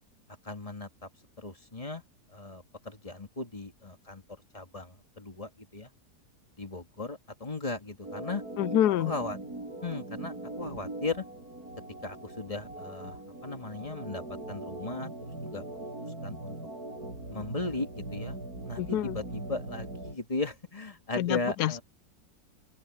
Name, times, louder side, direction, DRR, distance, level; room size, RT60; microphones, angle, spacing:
voice 1, 0.4-0.9 1.4-2.0 2.3-4.2 4.5-5.9 6.6-8.4 9.0-9.4 9.8-11.2 12.0-13.2 13.4-15.1 15.4-15.9 16.2-16.6 17.3-18.4 18.7-21.8, left 3 dB, 20° left, 2.1 m, -37 dB
Organ, 8.0-20.2, right 2 dB, 70° right, 7.0 m, -40 dB
voice 2, 8.6-9.1 18.8-19.2 21.2-21.8, left 12 dB, 85° left, 1.2 m, -27 dB
open air
omnidirectional pair, 1.7 m